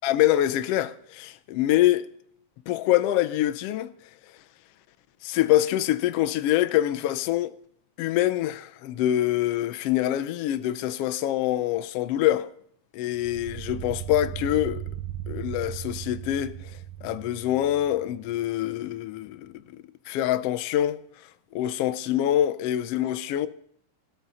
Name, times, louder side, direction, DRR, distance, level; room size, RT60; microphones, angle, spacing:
voice 1, 0.0-2.0 2.7-3.9 5.2-7.5 8.0-12.5 12.9-14.8 15.3-21.0 21.5-23.5, left 13 dB, 75° left, 1.4 m, -25 dB
sound 1, 13.1-18.4, right 12 dB, 75° right, 1.4 m, -37 dB
19.5 x 13.5 x 4.1 m
omnidirectional pair, 3.4 m